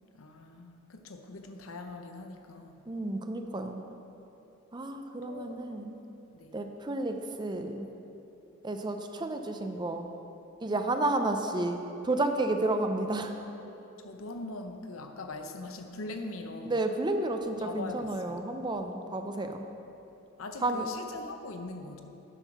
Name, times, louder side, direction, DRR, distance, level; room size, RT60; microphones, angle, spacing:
voice 1, 0.1-2.9 5.2-5.6 6.3-6.5 14.0-16.8 17.4-18.4 20.4-22.0, left 2 dB, 85° left, 6 dB, 0.8 m, -42 dB
voice 2, 2.9-3.8 4.7-6.0 6.5-7.9 8.6-10.1 10.6-13.3 16.6-19.7 20.6-20.9, right 2 dB, 20° right, 6 dB, 0.5 m, -31 dB
9.0 x 6.3 x 5.7 m, 2.9 s
head